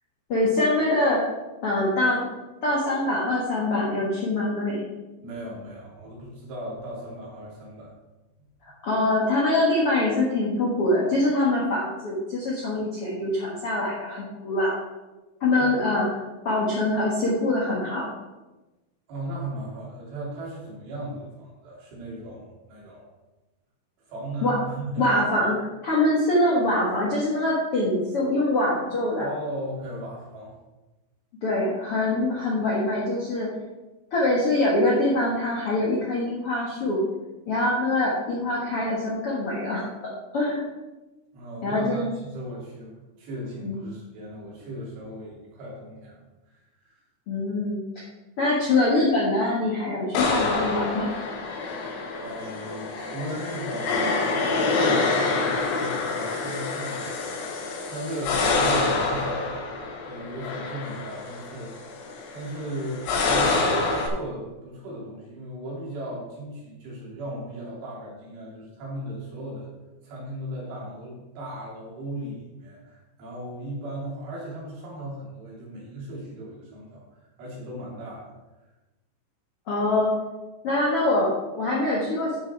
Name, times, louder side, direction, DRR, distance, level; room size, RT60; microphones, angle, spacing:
voice 1, 0.3-1.2 1.6-2.3 2.6-4.8 8.8-14.8 15.4-16.1 16.4-18.1 24.4-24.5 25.0-25.6 25.8-29.3 31.4-33.5 34.1-37.0 37.5-39.8 40.3-40.6 41.6-42.1 43.6-43.8 47.3-48.0 48.4-51.1 79.7-80.1 80.6-82.4, left 2 dB, 60° left, -5 dB, 1.5 m, -24 dB
voice 2, 5.2-7.9 15.6-15.8 19.1-23.1 24.1-25.1 29.2-30.5 41.3-47.0 52.1-59.7 60.1-61.9 62.3-69.7 70.0-78.3, right 1 dB, 75° right, -5 dB, 5.4 m, -37 dB
sound 1, 50.1-64.1, left 3 dB, 80° left, 3.3 m, -27 dB
12.5 x 6.3 x 4.6 m, 1.1 s
omnidirectional pair, 5.0 m